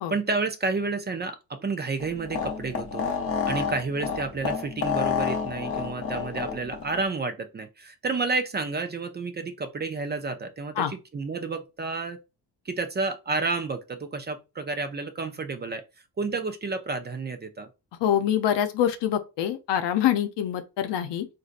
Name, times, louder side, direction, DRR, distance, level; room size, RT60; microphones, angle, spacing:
voice 1, 0.1-3.1 3.5-12.2 12.7-15.8 16.2-17.7, right 3 dB, 25° right, 0.4 m, -30 dB
sound 1, 2.0-7.0, left 6 dB, 35° left, 0.6 m, -30 dB
voice 2, 18.0-21.3, left 10 dB, 85° left, 0.7 m, -25 dB
4.1 x 2.6 x 2.5 m
cardioid pair, 130°, 41 cm